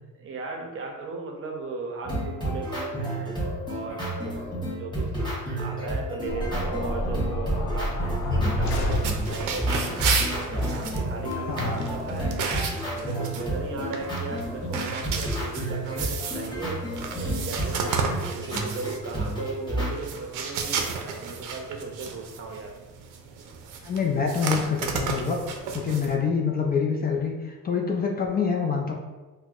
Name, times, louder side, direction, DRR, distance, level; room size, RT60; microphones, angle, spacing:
voice 1, 0.2-3.4 3.7-9.7 10.3-12.4 12.8-16.8 17.2-22.7, right 3 dB, 45° right, 1 dB, 0.6 m, -36 dB
sound 1, 2.0-19.9, right 1 dB, 15° left, 1.1 m, -31 dB
sound 2, 6.3-9.6, left 1 dB, 70° left, 0.7 m, -28 dB
sound 3, 8.6-26.1, right 5 dB, 90° right, 0.5 m, -33 dB
voice 2, 11.5-11.9 23.8-25.4 25.7-28.9, left 6 dB, 30° left, 1 dB, 0.4 m, -26 dB
4.3 x 2.1 x 2.4 m, 1.2 s
cardioid pair, 110°, 30 cm